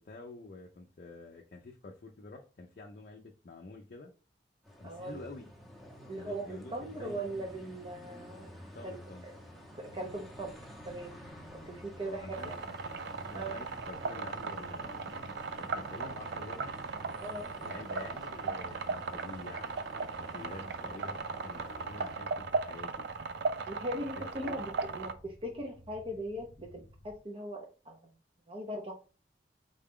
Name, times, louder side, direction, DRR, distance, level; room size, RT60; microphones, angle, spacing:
voice 1, 0.0-4.1 4.8-5.5 6.2-7.2 8.7-9.3 11.6-11.7 12.0-12.5 13.2-16.8 17.6-23.1 24.2-24.7, left 2 dB, 50° left, 0 dB, 0.5 m, -48 dB
sound 1, 4.6-22.2, equal, ahead, 0.8 m, -50 dB
voice 2, 4.8-5.2 6.1-8.5 8.8-9.0 9.9-10.6 10.9-11.2 11.6-12.6 13.3-13.6 17.2-17.5 23.7-28.0 28.5-28.9, right 1 dB, 30° right, 1 dB, 0.6 m, -39 dB
sound 2, 10.1-27.2, left 1 dB, 30° left, 1.0 m, -56 dB
sound 3, 12.3-25.1, right 4 dB, 70° right, 0.4 m, -37 dB
3.8 x 2.3 x 3.5 m, 0.36 s
head